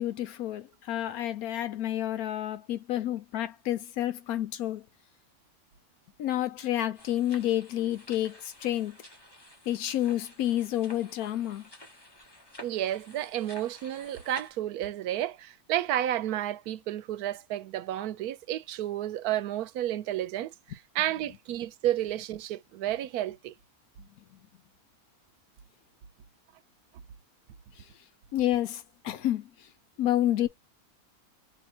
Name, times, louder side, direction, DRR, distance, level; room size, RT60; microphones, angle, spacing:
voice 1, 0.0-4.8 6.2-9.0 9.7-11.7 27.8-27.9 28.3-29.7 30.0-30.5, left 12 dB, 75° left, 1.1 m, -29 dB
sound 1, 6.9-14.5, left 1 dB, 15° left, 1.6 m, -52 dB
voice 2, 12.6-20.5 20.9-23.5, right 12 dB, 85° right, 1.1 m, -31 dB
5.5 x 2.8 x 2.8 m
omnidirectional pair, 1.6 m